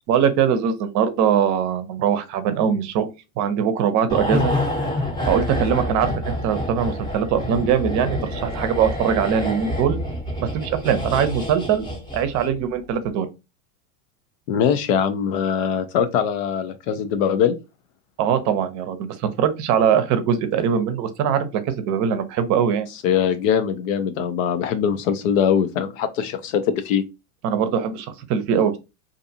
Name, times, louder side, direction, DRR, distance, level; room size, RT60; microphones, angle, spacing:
voice 1, 0.1-3.1 3.4-4.5 5.3-10.0 10.4-11.9 12.1-13.3 18.2-22.9 27.4-28.8, right 8 dB, 40° right, 0.6 m, -21 dB
sound 1, 4.1-12.6 12.9-13.1, left 1 dB, 10° left, 0.7 m, -27 dB
voice 2, 14.5-17.5 23.0-27.0, left 8 dB, 65° left, 0.6 m, -22 dB
2.6 x 2.4 x 2.7 m
hypercardioid pair, 110°, 43 cm